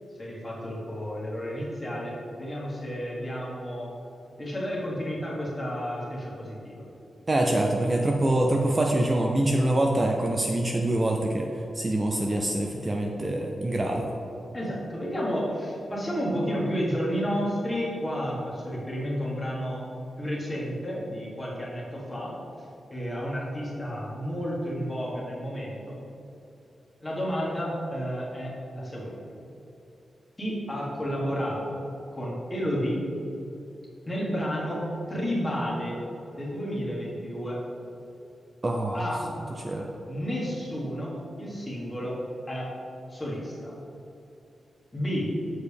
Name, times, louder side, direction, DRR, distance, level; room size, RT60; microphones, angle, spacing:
voice 1, 0.2-3.9 4.4-6.8 14.5-19.8 20.2-22.4 22.9-26.0 27.0-29.2 30.4-31.8 32.1-33.0 34.0-36.0 36.3-37.6 38.9-39.3 40.1-42.2 42.5-42.7 43.1-43.7 44.9-45.3, equal, 15° left, -5 dB, 1.6 m, -31 dB
voice 2, 7.3-11.5 11.7-14.1 38.6-39.1 39.6-39.9, right 1 dB, 25° right, 1 dB, 0.4 m, -25 dB
6.6 x 6.5 x 3.5 m, 2.9 s
wide cardioid pair, 130°, 0 cm